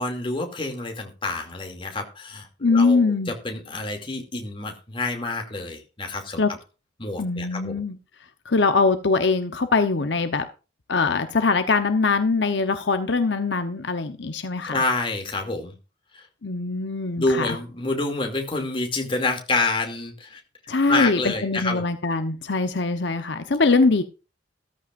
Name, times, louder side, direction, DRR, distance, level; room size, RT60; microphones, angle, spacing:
voice 1, 0.0-6.4 7.0-7.8 14.6-15.7 16.1-16.3 17.2-20.4 20.9-21.8, left 2 dB, 30° left, 2.6 m, -28 dB
voice 2, 2.6-3.3 6.4-6.5 7.2-8.0 8.4-10.4 10.9-14.8 16.4-17.6 20.7-24.0, left 3 dB, 70° left, 0.9 m, -22 dB
14.0 x 14.0 x 2.5 m
head